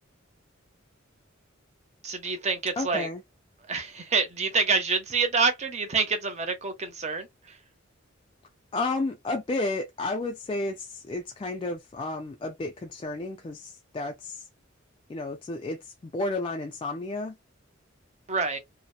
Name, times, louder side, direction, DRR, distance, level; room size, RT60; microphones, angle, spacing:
voice 1, 2.0-3.1 3.7-7.6 18.3-18.6, right 4 dB, 35° right, 0.7 m, -27 dB
voice 2, 2.8-3.2 8.7-14.5 15.1-17.4, left 2 dB, 25° left, 0.3 m, -32 dB
2.8 x 2.1 x 2.3 m
head